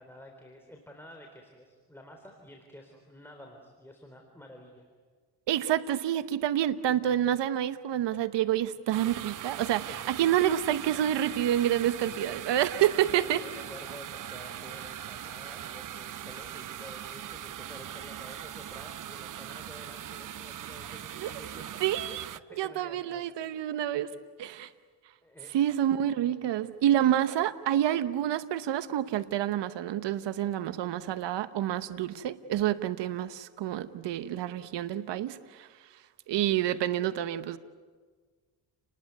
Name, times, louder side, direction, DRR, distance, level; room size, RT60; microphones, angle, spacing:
voice 1, 0.0-4.9 9.9-10.1 12.0-12.3 12.7-21.8 22.5-23.3 25.2-25.7, left 1 dB, 5° left, 3 dB, 3.8 m, -50 dB
voice 2, 5.5-13.4 21.2-21.3 21.8-22.2 22.6-24.1 24.4-24.7 25.5-35.7 36.3-37.6, right 11 dB, 80° right, 12 dB, 1.0 m, -28 dB
sound 1, 8.9-22.4, right 10 dB, 50° right, 0.7 m, -40 dB
29.5 x 20.0 x 9.5 m, 1.5 s
cardioid pair, 90°, 42 cm